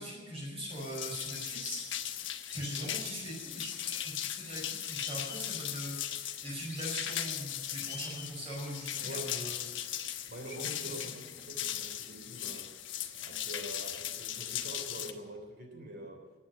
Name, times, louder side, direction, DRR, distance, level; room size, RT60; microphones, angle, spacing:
voice 1, 0.0-2.2 2.5-3.8 4.0-9.6 10.5-10.7, equal, 30° right, -3 dB, 5.6 m, -41 dB
sound 1, 0.7-15.1, left 11 dB, 80° left, 1.1 m, -38 dB
sound 2, 2.5-2.9 3.8-4.2 4.9-5.4 6.7-7.0 7.7-8.3, left 5 dB, 20° left, 2.8 m, -47 dB
voice 2, 9.0-9.4 10.3-12.7 13.1-16.2, right 1 dB, 55° right, 3 dB, 3.2 m, -45 dB
16.0 x 8.9 x 9.5 m, 1.3 s
head